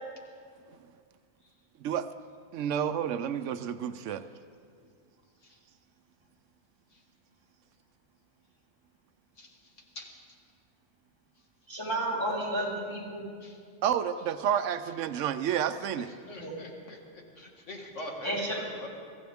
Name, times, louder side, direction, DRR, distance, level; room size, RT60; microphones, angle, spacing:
voice 1, 2.5-4.2 13.8-16.1, right 9 dB, 85° right, 11 dB, 1.0 m, -30 dB
voice 2, 9.4-10.2 13.4-13.6 16.0-18.9, left 1 dB, 80° left, 0 dB, 2.2 m, -44 dB
voice 3, 11.7-13.2 16.2-16.5 18.2-18.6, right 1 dB, 20° right, -6 dB, 3.7 m, -32 dB
23.0 x 15.0 x 3.5 m, 2.1 s
omnidirectional pair, 1.2 m